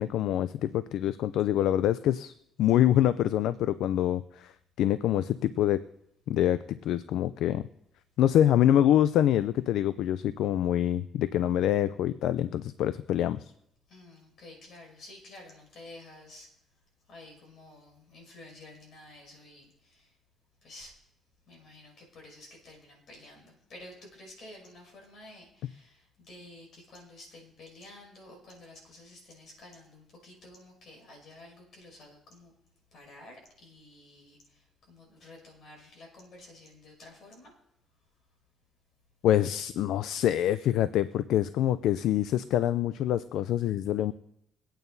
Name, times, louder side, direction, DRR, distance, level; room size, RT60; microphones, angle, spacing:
voice 1, 0.0-2.3 2.6-4.5 4.8-5.8 6.3-7.7 8.2-13.5 39.2-44.1, left 11 dB, 85° left, 14 dB, 0.3 m, -25 dB
voice 2, 13.9-16.5 17.1-20.2 20.6-20.9 21.5-32.5 32.9-37.5 39.6-39.8 40.2-40.4, left 2 dB, 65° left, 0 dB, 5.9 m, -51 dB
23.5 x 9.0 x 2.7 m, 0.76 s
cardioid pair, 90°, 0 cm